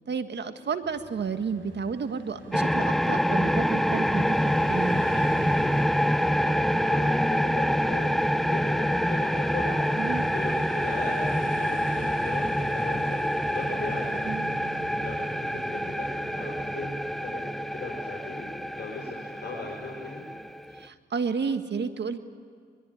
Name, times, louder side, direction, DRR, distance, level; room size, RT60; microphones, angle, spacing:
voice 1, 0.1-5.0 10.0-10.2 14.2-14.5 20.7-22.2, right 5 dB, 60° right, 9 dB, 1.7 m, -31 dB
sound 1, 0.8-17.3, right 3 dB, 75° right, 5.0 m, -44 dB
sound 2, 2.5-20.9, equal, ahead, 0.7 m, -26 dB
voice 2, 5.8-9.8 10.3-13.2 13.5-14.2 14.6-14.7 15.0-20.2, left 3 dB, 55° left, -2 dB, 5.7 m, -39 dB
23.0 x 22.0 x 9.9 m, 2.1 s
cardioid pair, 65°, 20 cm